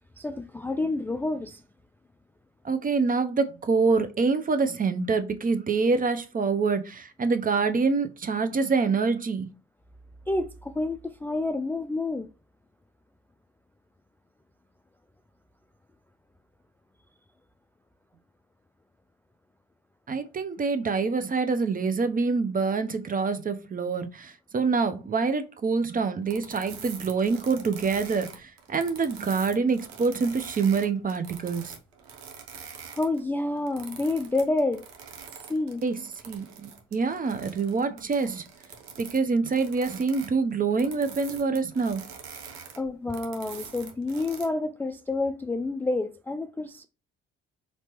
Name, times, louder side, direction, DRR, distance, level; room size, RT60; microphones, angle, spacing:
voice 1, 0.2-1.6 10.3-12.3 32.9-34.9 35.5-35.8 42.8-46.9, left 2 dB, 5° left, 0.3 m, -29 dB
voice 2, 2.6-9.5 20.1-31.8 35.8-38.4 39.0-42.0, right 4 dB, 30° right, 0.6 m, -26 dB
sound 1, 26.3-33.2 33.6-39.2 39.5-44.5, right 6 dB, 80° right, 0.9 m, -44 dB
4.3 x 3.0 x 3.0 m
hypercardioid pair, 50°, 30 cm